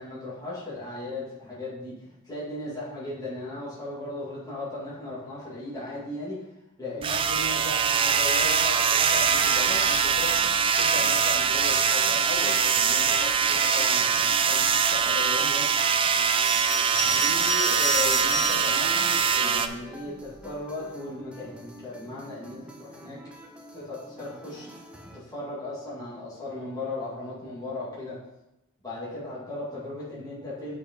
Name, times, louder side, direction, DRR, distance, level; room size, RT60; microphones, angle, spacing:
voice 1, 0.0-2.0 2.2-6.4 6.8-15.7 17.0-23.2 23.7-24.7 25.1-28.2 28.8-30.8, left 2 dB, 15° left, -9 dB, 2.5 m, -36 dB
sound 1, 7.0-19.7, right 6 dB, 25° right, 0.3 m, -23 dB
sound 2, 9.2-25.2, right 1 dB, 5° right, 0.7 m, -48 dB
Bell, 16.4-18.8 19.5-20.4, equal, 50° left, 1.9 m, -31 dB
6.8 x 5.0 x 4.7 m, 0.93 s
head